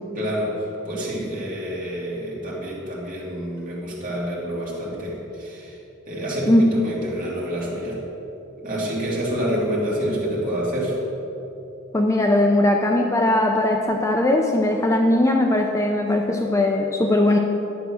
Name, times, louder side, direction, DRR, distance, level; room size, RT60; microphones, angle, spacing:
voice 1, 0.1-0.5 0.9-5.8 6.1-8.0 8.6-11.0, equal, 40° right, -5 dB, 2.5 m, -27 dB
voice 2, 11.9-17.4, left 1 dB, 15° left, 2 dB, 0.5 m, -19 dB
10.5 x 6.8 x 6.3 m, 2.9 s
head